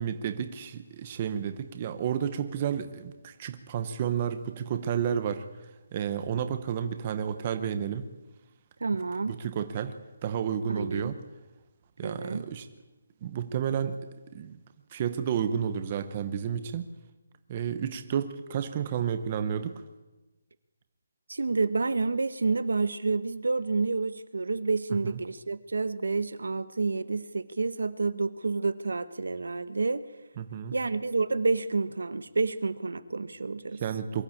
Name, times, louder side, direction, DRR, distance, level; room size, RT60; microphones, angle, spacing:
voice 1, 0.0-8.1 9.3-9.9 10.2-11.2 12.0-12.7 13.2-14.0 14.3-14.6 14.9-16.8 17.5-19.8 24.9-25.2 30.4-30.7 33.8-34.2, right 8 dB, 20° right, 9 dB, 0.8 m, -31 dB
voice 2, 8.8-9.3 10.7-11.2 12.0-12.4 21.3-30.1 30.7-33.8, right 3 dB, 80° right, 14 dB, 1.1 m, -29 dB
22.5 x 14.0 x 8.5 m, 1.1 s
hypercardioid pair, 180°, 0 cm